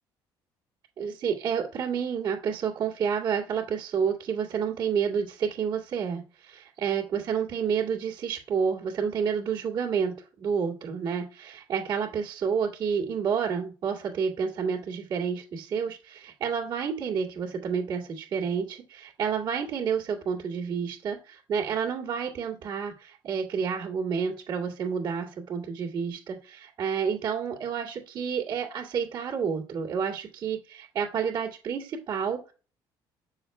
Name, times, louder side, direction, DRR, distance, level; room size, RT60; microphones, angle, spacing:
voice 1, 1.0-32.5, right 6 dB, 55° right, -6 dB, 2.5 m, -29 dB
7.7 x 7.0 x 2.2 m, 0.33 s
cardioid pair, 130°, 9 cm